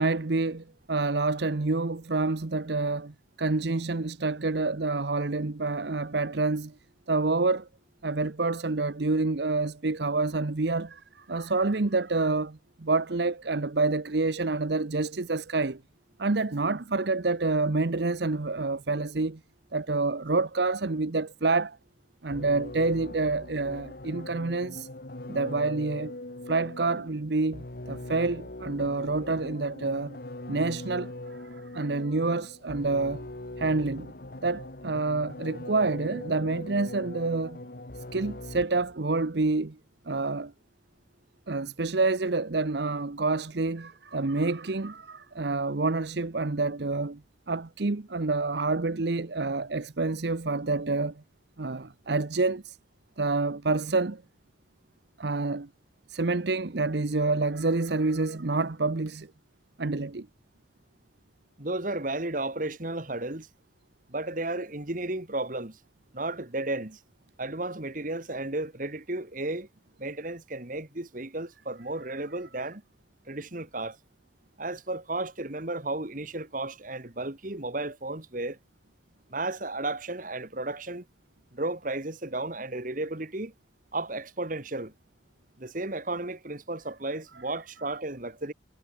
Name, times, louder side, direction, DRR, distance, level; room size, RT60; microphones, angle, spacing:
voice 1, 0.0-6.7 7.1-7.7 8.0-15.8 16.2-19.4 19.7-21.8 22.2-24.9 25.3-26.1 26.5-30.2 30.5-33.3 33.6-34.1 34.4-37.6 38.1-39.8 40.1-40.5 41.5-47.2 47.5-51.1 51.6-52.8 53.2-54.2 55.2-55.7 56.1-59.3 59.8-60.3, right 3 dB, 60° right, 0.8 m, -28 dB
sound 1, 22.3-38.9, left 1 dB, 50° left, 1.5 m, -41 dB
voice 2, 61.6-63.5 64.1-65.8 66.1-67.0 67.4-69.7 70.0-72.8 73.3-74.0 74.6-78.6 79.3-81.0 81.5-83.5 83.9-84.9 85.6-88.5, right 2 dB, 45° right, 1.9 m, -33 dB
head